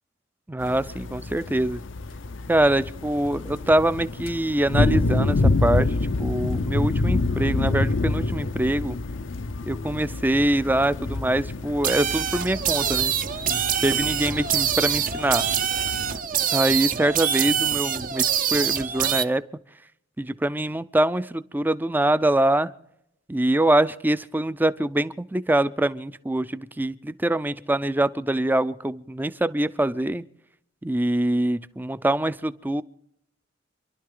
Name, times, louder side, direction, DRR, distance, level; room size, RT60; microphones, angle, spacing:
voice 1, 0.5-1.8 2.5-9.0 9.6-13.2 13.5-15.4 16.5-19.4 20.2-22.7 23.3-30.2 30.8-32.8, right 1 dB, 10° right, 15 dB, 0.5 m, -24 dB
sound 1, 0.6-16.2, left 2 dB, 70° left, 0.6 m, -27 dB
sound 2, 11.8-19.2, right 9 dB, 45° right, 0.7 m, -25 dB
27.5 x 12.0 x 3.8 m, 0.77 s
head